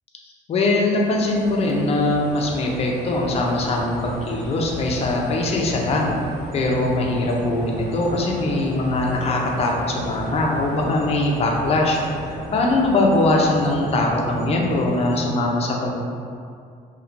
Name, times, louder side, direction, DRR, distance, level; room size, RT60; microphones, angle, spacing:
voice 1, 0.5-6.2 6.5-15.9, left 2 dB, 35° left, -1 dB, 0.4 m, -21 dB
sound 1, 0.8-15.2, right 1 dB, 75° right, 0.7 m, -34 dB
2.8 x 2.1 x 2.4 m, 2.3 s
cardioid pair, 110°, 17 cm